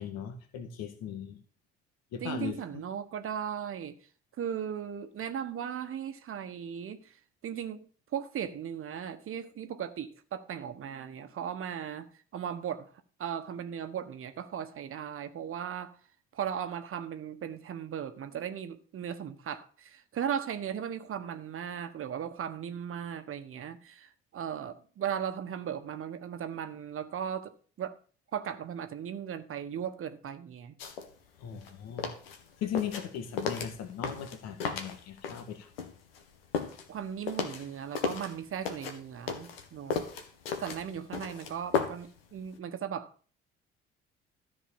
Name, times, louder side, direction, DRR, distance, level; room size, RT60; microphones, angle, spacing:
voice 1, 0.0-1.4 2.1-2.8 31.4-32.1 32.6-35.7, left 8 dB, 60° left, 1.8 m, -38 dB
voice 2, 2.2-4.0 4.4-7.1 7.4-7.8 8.1-12.9 13.2-16.0 16.3-28.0 28.3-30.7 36.9-40.0 40.6-43.1, right 8 dB, 45° right, 1.3 m, -37 dB
sound 1, 30.8-31.1 31.4-35.5 35.8-38.4 38.6-42.2 42.4-42.5, left 6 dB, 80° left, 1.6 m, -34 dB
13.5 x 5.3 x 7.1 m
hypercardioid pair, 55°, 29 cm